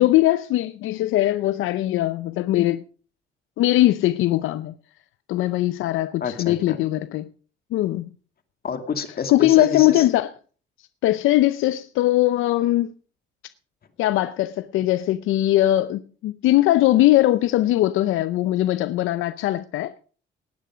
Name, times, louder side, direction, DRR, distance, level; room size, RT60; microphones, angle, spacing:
voice 1, 0.0-2.8 3.6-4.7 5.3-7.3 7.7-8.1 9.3-10.3 11.0-12.9 14.0-19.9, left 15 dB, 85° left, 0.6 m, -20 dB
voice 2, 6.2-6.8 8.6-10.1, left 6 dB, 50° left, 2.5 m, -28 dB
18.5 x 9.2 x 5.0 m
cardioid pair, 90°, 20 cm